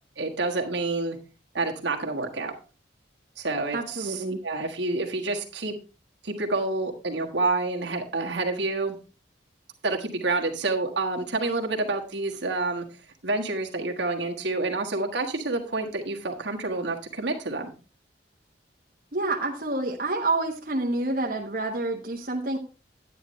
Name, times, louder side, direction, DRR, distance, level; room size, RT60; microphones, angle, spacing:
voice 1, 0.2-1.2 1.5-2.5 3.4-5.7 6.2-9.0 9.8-12.9 13.2-17.7, right 3 dB, 75° right, 2 dB, 1.5 m, -28 dB
voice 2, 3.7-4.4 19.1-22.6, right 2 dB, 50° right, -1 dB, 1.2 m, -28 dB
9.9 x 9.6 x 3.2 m, 0.34 s
head